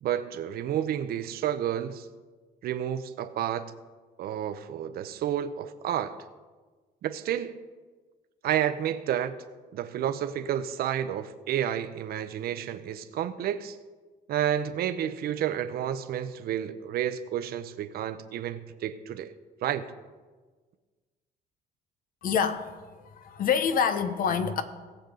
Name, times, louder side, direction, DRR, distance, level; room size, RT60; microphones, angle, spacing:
voice 1, 0.0-2.1 2.6-3.7 4.2-6.2 7.0-7.6 8.4-9.3 9.7-13.8 14.3-19.3 19.6-19.8, right 10 dB, 65° right, 0.8 m, -30 dB
voice 2, 22.2-24.6, left 7 dB, 55° left, 1.1 m, -27 dB
19.0 x 7.2 x 3.9 m
cardioid pair, 110°, 17 cm